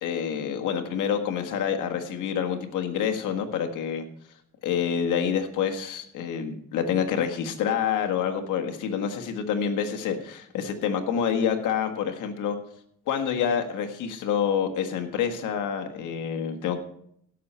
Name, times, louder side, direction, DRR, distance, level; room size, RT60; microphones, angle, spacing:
voice 1, 0.0-4.0 4.6-12.6 13.1-16.8, left 8 dB, 85° left, 6 dB, 1.7 m, -27 dB
17.0 x 6.7 x 4.4 m, 0.68 s
cardioid pair, 90°, 30 cm